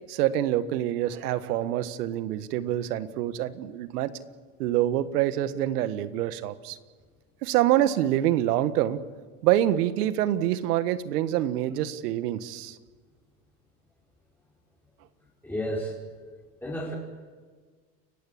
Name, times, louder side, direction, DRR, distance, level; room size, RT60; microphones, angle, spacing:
voice 1, 0.1-4.1 4.6-6.8 7.4-9.0 9.4-12.7, right 12 dB, 80° right, 13 dB, 1.6 m, -26 dB
voice 2, 15.4-15.9 16.6-16.9, equal, 5° left, -5 dB, 5.2 m, -31 dB
30.0 x 15.5 x 8.6 m, 1.5 s
supercardioid pair, 110°, 46 cm